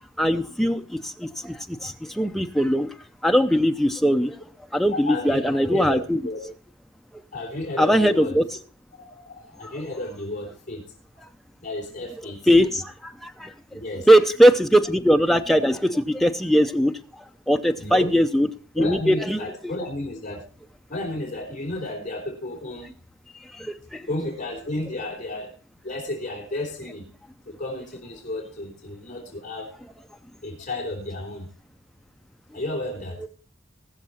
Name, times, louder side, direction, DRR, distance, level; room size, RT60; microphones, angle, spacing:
voice 1, 0.2-2.9 3.2-4.3 4.7-6.2 7.8-8.4 9.6-9.7 12.5-13.5 14.1-16.9 17.5-18.5 18.8-19.5 23.6-24.0, equal, ahead, 5 dB, 0.6 m, -20 dB
voice 2, 4.9-6.4 7.3-8.4 9.0-10.8 11.6-12.6 13.7-14.1 17.8-18.2 18.8-20.5 20.9-22.9 24.1-25.5 25.8-27.0 27.5-29.8 30.4-31.5 32.5-33.2, left 1 dB, 35° left, -2 dB, 3.6 m, -32 dB
20.0 x 6.7 x 4.3 m, 0.40 s
head